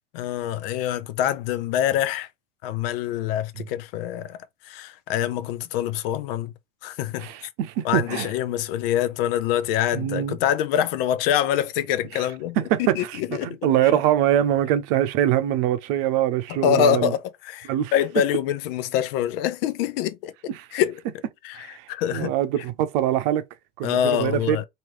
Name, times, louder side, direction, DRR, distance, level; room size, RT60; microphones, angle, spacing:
voice 1, 0.1-2.3 2.6-4.4 4.7-6.5 6.8-7.3 7.8-12.6 12.9-13.6 16.6-20.3 20.7-21.0 21.4-22.3 23.8-24.6, left 10 dB, 70° left, 0.6 m, -25 dB
voice 2, 7.2-8.3 9.9-10.4 12.1-12.3 12.6-17.1 17.7-17.9 20.5-20.8 21.6-23.4 23.8-24.6, right 11 dB, 65° right, 0.7 m, -24 dB
3.0 x 2.7 x 3.1 m
hypercardioid pair, 70°, 30 cm